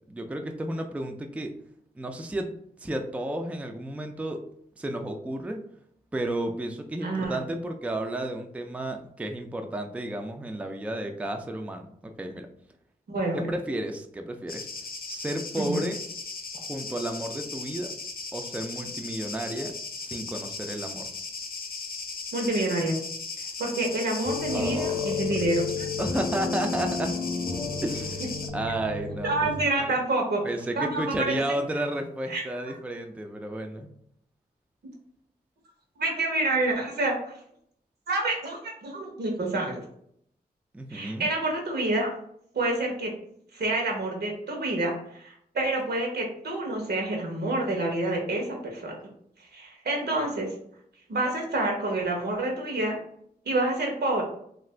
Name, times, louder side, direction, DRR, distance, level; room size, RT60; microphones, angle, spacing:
voice 1, 0.1-1.5 2.0-2.6 2.8-4.4 4.8-5.6 6.1-12.5 13.3-14.7 15.1-16.0 16.5-17.9 18.3-19.7 20.0-21.1 24.5-25.2 26.0-27.1 27.8-29.3 29.8-29.9 30.4-33.9 40.7-41.3, right 1 dB, 10° right, 4 dB, 0.3 m, -32 dB
voice 2, 7.0-7.4 13.1-13.5 15.5-15.8 22.3-23.0 23.4-25.9 29.2-30.4 30.8-31.5 32.3-32.7 36.0-37.3 38.1-39.8 40.9-42.1 42.5-43.1 43.5-48.9 49.4-50.5 51.1-53.0 53.4-54.2, right 2 dB, 85° right, 0 dB, 1.0 m, -28 dB
sound 1, 14.5-28.5, left 4 dB, 65° left, 0.6 m, -37 dB
sound 2, 24.2-29.6, left 5 dB, 20° left, 0.7 m, -32 dB
2.8 x 2.5 x 3.2 m, 0.68 s
wide cardioid pair, 85°, 16 cm